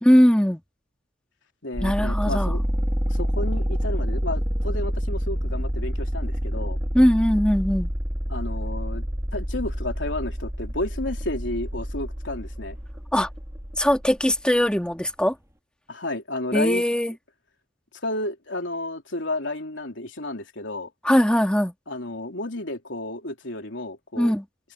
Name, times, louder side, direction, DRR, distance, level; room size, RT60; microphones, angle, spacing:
voice 1, 0.0-0.6 1.8-2.5 6.9-7.9 13.1-13.3 13.8-15.3 16.5-17.1 21.0-21.7 24.2-24.4, equal, 5° left, 2.1 m, -20 dB
voice 2, 1.6-2.6 3.1-6.8 8.3-9.1 9.3-12.8 15.9-16.8 18.0-20.9 21.9-24.4, left 1 dB, 80° left, 3.4 m, -31 dB
sound 1, 1.7-14.4, equal, 15° right, 3.0 m, -28 dB
head